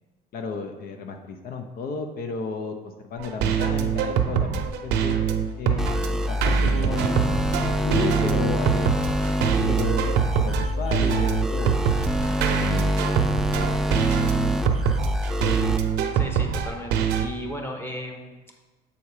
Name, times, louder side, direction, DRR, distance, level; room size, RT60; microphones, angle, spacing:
voice 1, 0.3-5.2 5.6-8.9 9.2-12.2 12.4-13.3 13.5-14.0, left 5 dB, 60° left, 5 dB, 0.7 m, -34 dB
sound 1, 3.2-17.3, right 8 dB, 85° right, 0.6 m, -24 dB
sound 2, 5.8-15.8, left 1 dB, 5° right, 0.4 m, -26 dB
voice 2, 16.1-18.4, equal, 15° left, 2 dB, 1.1 m, -35 dB
7.0 x 4.2 x 4.8 m, 1.2 s
cardioid pair, 110°, 17 cm